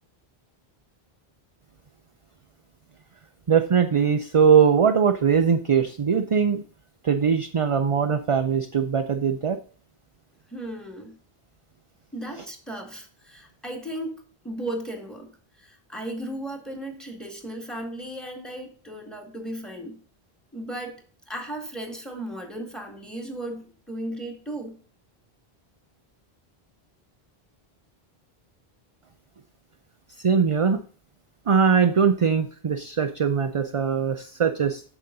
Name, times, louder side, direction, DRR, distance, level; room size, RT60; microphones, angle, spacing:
voice 1, 3.5-6.6 7.0-9.6 30.2-30.8 31.5-34.8, right 6 dB, 40° right, 8 dB, 0.5 m, -21 dB
voice 2, 10.5-11.1 12.1-14.1 14.4-20.0 20.5-21.0 21.3-24.8, right 1 dB, ahead, 3 dB, 2.1 m, -35 dB
8.5 x 6.9 x 3.9 m, 0.42 s
omnidirectional pair, 1.0 m